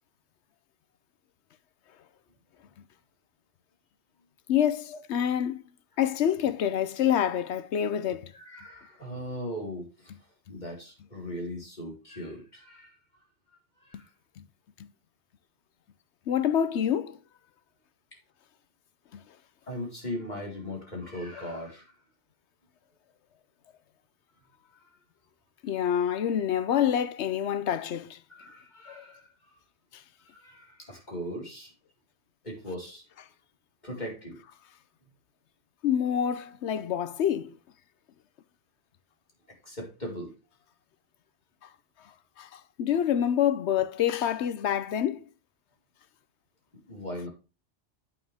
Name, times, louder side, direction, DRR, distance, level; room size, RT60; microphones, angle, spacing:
voice 1, 4.5-5.6 6.0-8.3 14.4-14.5 16.3-17.2 19.1-19.2 21.3-21.4 25.6-28.2 28.9-29.0 29.9-30.0 35.8-37.6 42.4-45.2, left 9 dB, 70° left, 1.0 m, -27 dB
voice 2, 8.3-9.9 10.5-12.9 13.9-14.1 19.7-21.9 28.3-29.3 30.3-31.7 32.4-33.0 33.8-34.4 39.6-40.3 46.9-47.3, equal, 40° left, 4.6 m, -38 dB
9.4 x 8.9 x 3.5 m
omnidirectional pair, 1.2 m